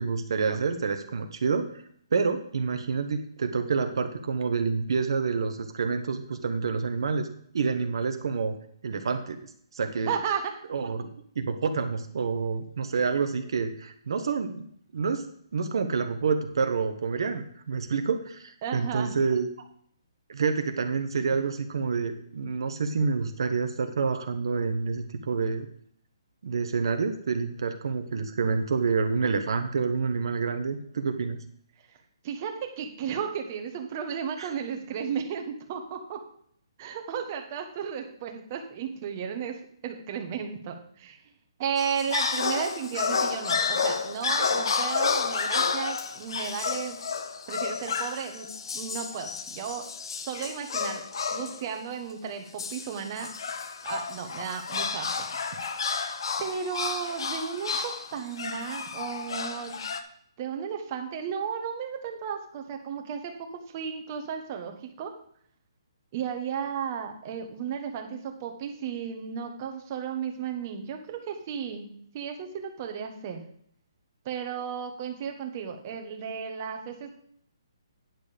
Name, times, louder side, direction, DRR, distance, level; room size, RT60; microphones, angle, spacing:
voice 1, 0.0-1.8 2.1-7.3 7.5-8.6 8.8-10.1 10.7-11.1 11.3-14.7 14.9-15.3 15.5-19.5 20.3-25.7 26.4-31.4 34.4-34.5, right 5 dB, 60° right, 7 dB, 1.0 m, -28 dB
voice 2, 10.0-10.5 18.6-19.2 32.2-36.2 36.8-39.6 39.8-41.2 41.6-47.0 47.5-48.5 48.7-49.9 50.2-51.0 51.3-53.3 53.8-55.6 56.4-59.8 60.4-63.3 63.7-65.1 66.1-71.9 72.1-73.4 74.2-77.1, right 7 dB, 30° right, 4 dB, 1.2 m, -34 dB
sound 1, 41.8-51.7 52.6-60.0, left 5 dB, 60° left, 1.0 m, -31 dB
9.4 x 6.6 x 5.0 m, 0.64 s
hypercardioid pair, 165°, 3 cm